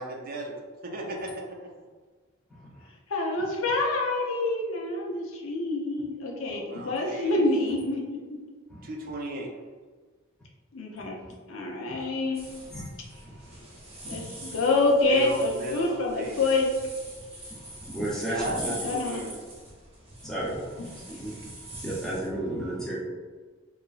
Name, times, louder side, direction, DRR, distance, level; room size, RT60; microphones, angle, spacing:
voice 1, 0.0-1.6 6.4-7.4 8.8-9.5 15.0-16.4 18.3-19.4, right 1 dB, 45° right, 1 dB, 0.4 m, -36 dB
voice 2, 3.1-8.2 10.7-11.2 11.5-12.5 14.1-16.7 18.6-19.3 20.8-20.9, left 2 dB, 75° left, 0 dB, 0.5 m, -27 dB
sound 1, 12.3-22.3, right 1 dB, 30° right, 0.8 m, -43 dB
voice 3, 13.2-13.5 14.1-14.5 17.5-18.7 20.2-23.0, right 1 dB, 5° left, -6 dB, 0.6 m, -34 dB
2.9 x 2.5 x 2.3 m, 1.4 s
head